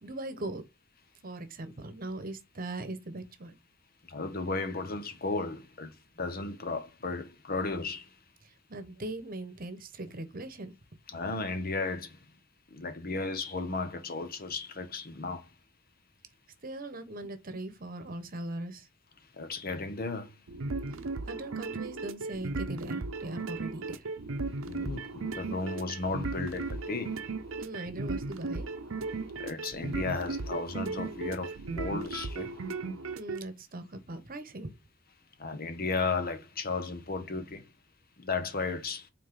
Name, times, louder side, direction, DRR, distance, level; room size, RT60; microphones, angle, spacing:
voice 1, 0.0-0.6 1.2-3.5 8.7-10.7 16.6-18.9 21.3-24.1 27.6-28.7 33.1-34.7, right 2 dB, 45° right, 1.1 m, -40 dB
voice 2, 4.1-8.1 11.1-12.2 12.7-15.5 19.3-20.4 24.6-27.2 29.4-32.6 35.4-37.7 38.2-39.1, left 3 dB, 45° left, 1.1 m, -34 dB
sound 1, 20.5-33.4, right 3 dB, 85° right, 0.7 m, -36 dB
6.3 x 4.3 x 3.7 m
head